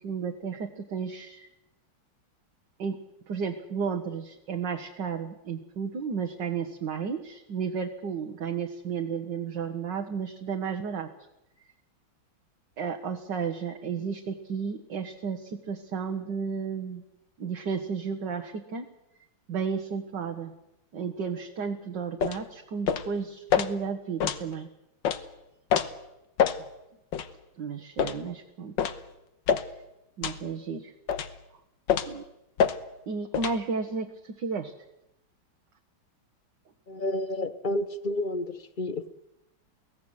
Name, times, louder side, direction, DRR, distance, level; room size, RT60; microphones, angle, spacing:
voice 1, 0.0-1.5 2.8-3.0 3.3-11.1 12.8-17.0 17.4-18.9 19.5-20.5 20.9-24.7 27.6-28.7 30.2-30.9 32.0-32.3 33.1-34.7, right 6 dB, 60° right, 4 dB, 1.9 m, -33 dB
sound 1, 22.2-22.4 22.9-23.1 23.5-23.7 24.2-24.4 25.0-25.2 25.7-25.9 26.4-26.6 27.1-27.3 28.0-28.2 28.8-29.0 29.5-29.7 30.2-30.4 31.1-31.3 31.9-32.2 32.6-32.8 33.3-33.6, left 8 dB, 65° left, 1.7 m, -25 dB
voice 2, 36.9-39.1, left 1 dB, 45° left, 13 dB, 0.6 m, -31 dB
23.5 x 17.0 x 8.0 m, 0.88 s
omnidirectional pair, 2.2 m